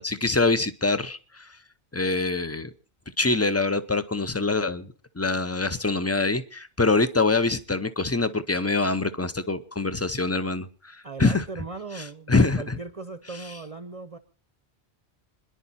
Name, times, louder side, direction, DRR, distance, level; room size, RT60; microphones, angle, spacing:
voice 1, 0.0-1.5 1.9-2.7 3.2-11.4 12.3-12.8, left 3 dB, 20° left, 13 dB, 0.5 m, -25 dB
voice 2, 11.0-14.2, right 4 dB, 35° right, 10 dB, 0.8 m, -38 dB
26.5 x 10.5 x 4.2 m, 0.37 s
omnidirectional pair, 1.2 m